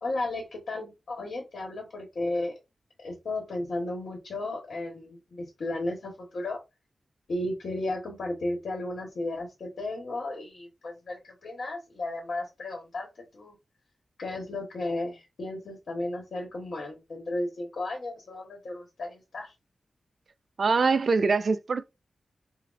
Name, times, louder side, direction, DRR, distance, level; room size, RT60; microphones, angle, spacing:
voice 1, 0.0-2.5 3.0-6.6 7.3-13.1 13.3-13.6 14.2-19.5, left 2 dB, 75° left, 1.1 m, -34 dB
voice 2, 20.6-21.8, right 4 dB, 55° right, 0.3 m, -23 dB
5.7 x 2.0 x 2.5 m
wide cardioid pair, 130°, 0 cm